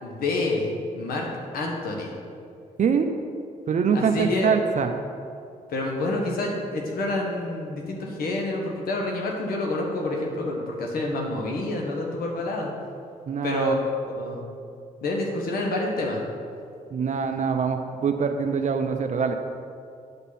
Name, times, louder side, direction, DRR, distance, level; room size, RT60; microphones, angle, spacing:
voice 1, 0.0-1.3 1.5-2.1 3.9-4.5 5.7-12.7 13.4-14.4 15.0-16.2, left 2 dB, 80° left, 0 dB, 1.4 m, -28 dB
voice 2, 2.8-3.1 3.7-4.9 13.3-13.8 16.9-19.4, right 6 dB, 55° right, 5 dB, 0.6 m, -24 dB
10.0 x 5.4 x 4.2 m, 2.4 s
cardioid pair, 75°, 15 cm